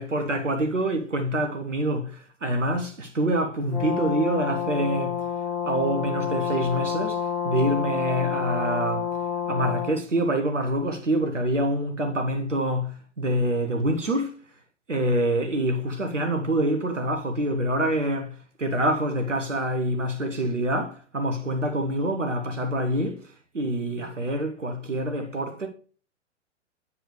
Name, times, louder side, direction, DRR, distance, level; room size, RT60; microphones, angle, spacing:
voice 1, 0.0-5.2 5.6-7.2 7.4-9.1 9.5-14.3 14.9-23.2 23.5-25.7, right 1 dB, 85° right, 1.1 m, -26 dB
Brass instrument, 3.7-9.9, left 7 dB, 5° left, 3.5 m, -29 dB
8.1 x 7.5 x 3.2 m
figure-of-eight pair, 110°, 36 cm